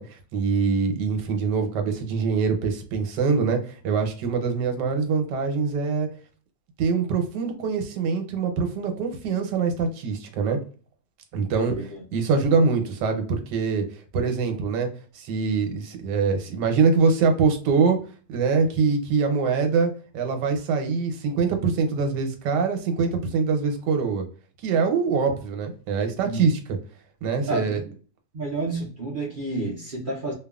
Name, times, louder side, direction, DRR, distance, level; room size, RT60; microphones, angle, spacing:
voice 1, 0.0-6.1 6.8-10.6 11.3-13.8 14.1-18.0 18.3-24.3 24.6-26.6 27.2-27.8, right 5 dB, 85° right, 5 dB, 1.3 m, -24 dB
voice 2, 11.5-12.0 26.2-26.5 27.5-27.8 28.3-30.3, right 2 dB, 55° right, -4 dB, 0.5 m, -30 dB
2.9 x 2.3 x 2.2 m, 0.40 s
omnidirectional pair, 1.8 m